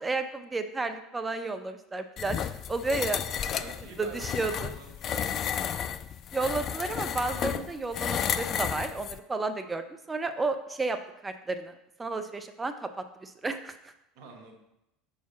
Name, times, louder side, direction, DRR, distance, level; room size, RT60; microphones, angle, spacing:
voice 1, 0.0-2.4 2.7-3.2 4.0-4.7 6.3-11.0 11.2-11.7 12.0-13.9, right 3 dB, 20° right, 8 dB, 0.5 m, -32 dB
sound 1, 2.2-9.2, left 8 dB, 45° left, 0.3 m, -32 dB
voice 2, 3.3-5.3 14.1-14.6, right 4 dB, 60° right, 3 dB, 1.1 m, -47 dB
6.1 x 4.0 x 4.0 m, 0.84 s
hypercardioid pair, 70°, 0 cm